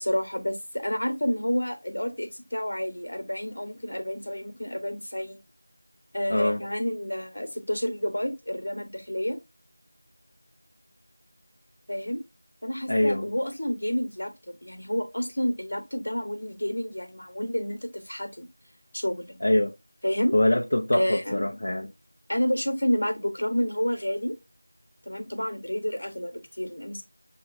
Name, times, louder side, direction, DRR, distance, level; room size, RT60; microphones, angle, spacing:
voice 1, 0.0-5.4 6.1-9.4 11.9-12.2 12.6-18.5 18.9-19.4 20.0-20.3 20.9-21.6 22.3-24.3 25.0-27.0, equal, 60° left, 1.2 m, -29 dB
voice 2, 12.9-13.3 19.4-19.7 20.3-21.9, left 1 dB, 40° left, 0.6 m, -23 dB
6.7 x 2.9 x 2.5 m
figure-of-eight pair, 175°, 0 cm